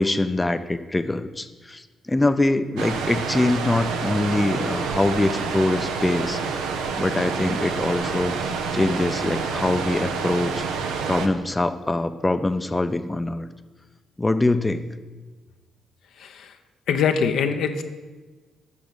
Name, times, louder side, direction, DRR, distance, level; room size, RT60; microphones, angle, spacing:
voice 1, 0.0-6.7 7.0-10.6 11.1-13.5 14.2-14.9, left 2 dB, 20° left, 10 dB, 0.6 m, -24 dB
sound 1, 2.8-11.3, right 5 dB, 75° right, 0.8 m, -28 dB
voice 2, 16.2-16.5 16.9-17.8, left 6 dB, 70° left, 6 dB, 0.7 m, -23 dB
8.5 x 6.1 x 8.1 m, 1.3 s
hypercardioid pair, 45°, 0 cm